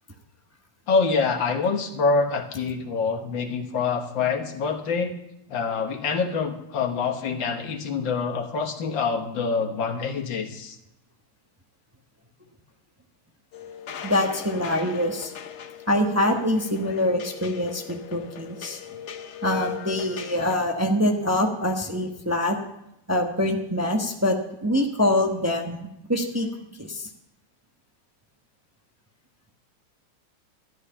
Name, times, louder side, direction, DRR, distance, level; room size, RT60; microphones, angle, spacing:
voice 1, 0.9-5.2 5.5-10.8, left 4 dB, 85° left, 5 dB, 2.0 m, -26 dB
sound 1, 13.5-20.7, left 9 dB, 60° left, 0.8 m, -38 dB
voice 2, 14.0-15.3 15.9-18.8 19.4-22.6 23.1-26.5 26.8-27.1, left 1 dB, 10° right, 2 dB, 0.9 m, -24 dB
13.0 x 11.0 x 5.7 m, 0.82 s
omnidirectional pair, 2.0 m